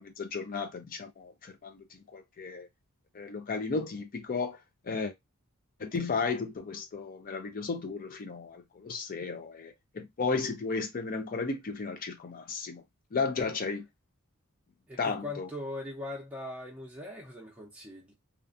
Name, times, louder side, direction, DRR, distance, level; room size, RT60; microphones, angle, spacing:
voice 1, 0.0-1.8 2.1-2.7 3.1-4.6 4.9-5.1 5.8-12.8 13.1-13.8 15.0-15.5, left 4 dB, 40° left, 0.5 m, -34 dB
voice 2, 14.9-18.1, left 2 dB, 5° right, 0.6 m, -40 dB
2.4 x 2.3 x 2.5 m
head